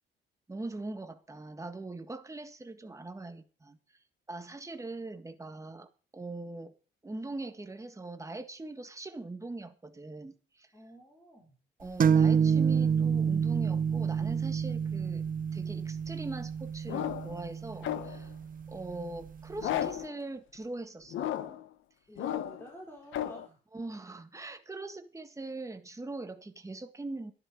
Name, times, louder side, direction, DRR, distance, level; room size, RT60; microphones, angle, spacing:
voice 1, 0.5-3.8 4.3-6.7 7.0-10.7 11.8-15.3 15.5-18.3 18.7-21.6 23.7-27.3, right 2 dB, 15° right, 8 dB, 1.8 m, -41 dB
voice 2, 10.7-11.6 22.1-23.6, right 1 dB, 10° left, -1 dB, 4.6 m, -49 dB
sound 1, 12.0-19.5, right 7 dB, 45° right, 0.8 m, -28 dB
sound 2, 16.9-17.4 17.8-18.3 19.6-20.2 21.1-21.7 22.2-22.7 23.1-23.5, left 11 dB, 80° left, 1.1 m, -34 dB
12.5 x 10.5 x 5.0 m, 0.37 s
cardioid pair, 90°, 20 cm